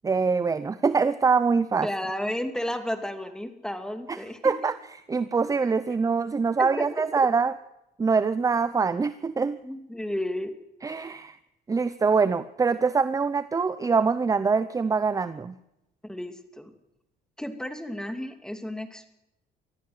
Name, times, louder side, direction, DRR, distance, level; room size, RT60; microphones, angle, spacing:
voice 1, 0.0-1.9 4.1-4.2 4.4-4.7 5.1-7.5 8.0-9.6 10.8-11.4 11.7-15.6, right 5 dB, 20° right, 14 dB, 0.7 m, -24 dB
voice 2, 1.8-4.5 6.6-7.3 9.6-10.5 16.0-16.7 17.4-19.2, left 1 dB, 5° left, 8 dB, 2.6 m, -33 dB
23.5 x 14.5 x 8.0 m, 0.86 s
cardioid pair, 110°, 17 cm